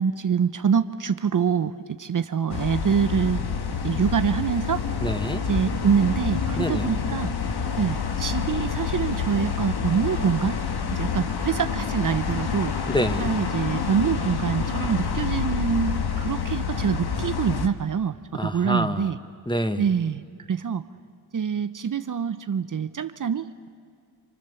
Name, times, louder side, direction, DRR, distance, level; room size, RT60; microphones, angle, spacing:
voice 1, 0.0-1.7 2.0-3.4 3.8-4.8 5.5-7.3 7.8-10.6 10.9-12.7 13.2-18.1 18.4-19.2 19.8-20.8 21.3-23.7, right 7 dB, 50° right, 11 dB, 0.8 m, -25 dB
sound 1, 2.5-17.7, left 6 dB, 75° left, 1.4 m, -28 dB
voice 2, 5.0-5.4 6.6-6.9 12.9-13.3 18.3-19.1 19.5-19.9, equal, 10° left, 9 dB, 1.2 m, -26 dB
28.5 x 26.0 x 6.9 m, 2.2 s
cardioid pair, 50°, 40 cm